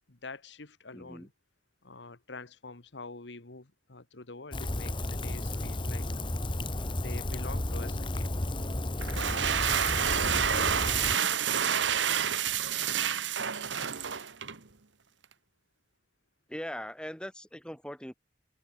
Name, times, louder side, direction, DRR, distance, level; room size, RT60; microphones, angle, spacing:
voice 1, 0.1-1.3 1.8-6.1 7.0-8.3, left 3 dB, 75° left, 1.6 m, -46 dB
voice 2, 0.9-1.3 6.8-6.9 16.5-18.1, equal, 5° left, 4.1 m, -40 dB
Rain, 4.5-11.2, left 1 dB, 25° left, 1.3 m, -33 dB
sound 1, 9.0-14.6, right 8 dB, 85° right, 1.5 m, -28 dB
head